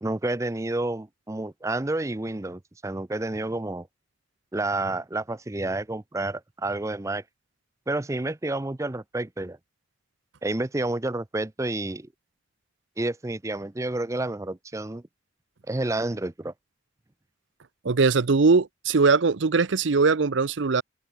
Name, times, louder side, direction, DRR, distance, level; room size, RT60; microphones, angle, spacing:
voice 1, 0.0-3.9 4.5-7.2 7.9-9.6 10.4-12.1 13.0-15.0 15.7-16.5, right 2 dB, 15° right, 0.5 m, -29 dB
voice 2, 17.8-20.8, right 4 dB, 75° right, 0.7 m, -21 dB
head